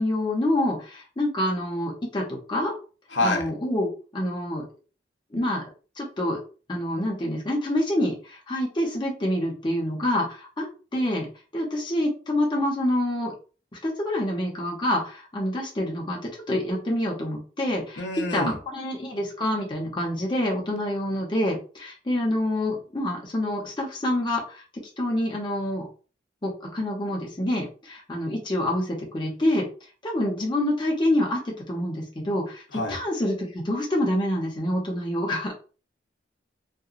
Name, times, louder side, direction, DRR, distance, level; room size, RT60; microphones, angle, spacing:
voice 1, 0.0-2.7 3.2-4.6 5.3-5.6 6.0-6.4 6.7-10.7 10.9-11.3 11.5-13.3 13.8-18.0 18.3-24.6 25.0-25.9 26.4-29.7 30.0-35.5, left 1 dB, 25° left, -2 dB, 0.6 m, -27 dB
voice 2, 3.1-3.4 18.0-18.5 32.7-33.0, left 2 dB, 80° left, 3 dB, 0.6 m, -26 dB
2.8 x 2.1 x 2.4 m, 0.37 s
head